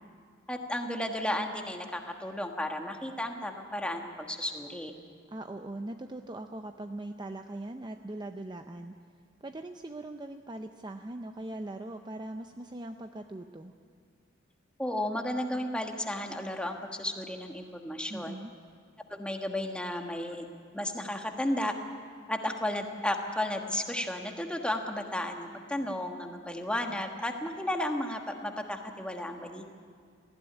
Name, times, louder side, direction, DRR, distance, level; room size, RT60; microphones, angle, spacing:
voice 1, 0.5-4.9 14.8-18.3 19.1-20.5 20.7-21.7 22.3-29.6, left 1 dB, 5° left, 3 dB, 1.4 m, -33 dB
voice 2, 5.3-8.9 9.4-13.7 18.1-18.5, right 1 dB, 20° right, 6 dB, 0.6 m, -40 dB
19.0 x 15.0 x 9.9 m, 2.1 s
head